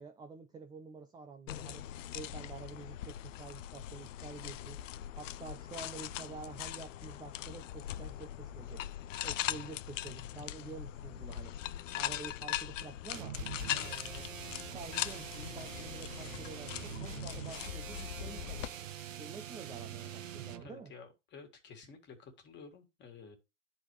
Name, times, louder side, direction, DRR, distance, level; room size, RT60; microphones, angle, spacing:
voice 1, 0.0-1.8 2.1-4.8 5.2-8.8 9.2-11.5 11.9-13.4 13.8-14.2 14.7-18.7 19.2-20.9, right 4 dB, 10° right, 0.5 m, -48 dB
sound 1, 1.5-18.7, left 13 dB, 75° left, 0.5 m, -41 dB
sound 2, 13.1-20.7, right 10 dB, 85° right, 0.9 m, -44 dB
voice 2, 20.6-23.4, left 5 dB, 30° left, 2.0 m, -52 dB
10.5 x 4.1 x 3.2 m
hypercardioid pair, 120°, 38 cm